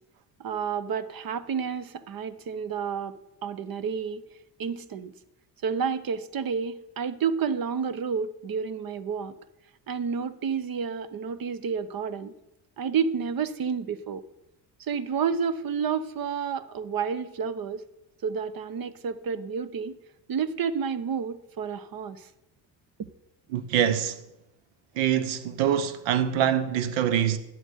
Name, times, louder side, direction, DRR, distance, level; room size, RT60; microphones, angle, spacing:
voice 1, 0.4-3.1 3.4-4.2 4.6-5.1 5.6-9.3 9.9-12.3 12.8-14.2 14.9-17.8 18.2-20.0 20.3-22.3 23.0-23.1, right 6 dB, 50° right, 1.1 m, -30 dB
voice 2, 23.5-24.2 25.0-27.4, right 9 dB, 80° right, 1.1 m, -24 dB
11.5 x 8.0 x 6.5 m
hypercardioid pair, 65°, 45 cm